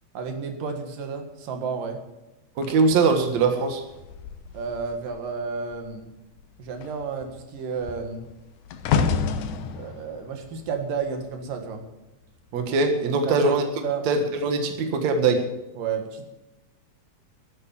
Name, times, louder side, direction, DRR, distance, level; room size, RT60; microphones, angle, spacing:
voice 1, 0.1-2.0 4.5-6.1 6.6-8.3 9.8-11.8 13.2-13.5 13.8-14.1 15.8-16.3, right 5 dB, 80° right, 5 dB, 3.5 m, -31 dB
sound 1, 2.6-5.3 5.6-6.0 6.3-11.7 12.4-12.7, left 6 dB, 70° left, 2.4 m, -30 dB
voice 2, 2.6-3.8 12.5-13.6 14.1-15.5, right 4 dB, 60° right, 5 dB, 2.7 m, -22 dB
13.5 x 11.0 x 7.2 m, 0.96 s
omnidirectional pair, 3.8 m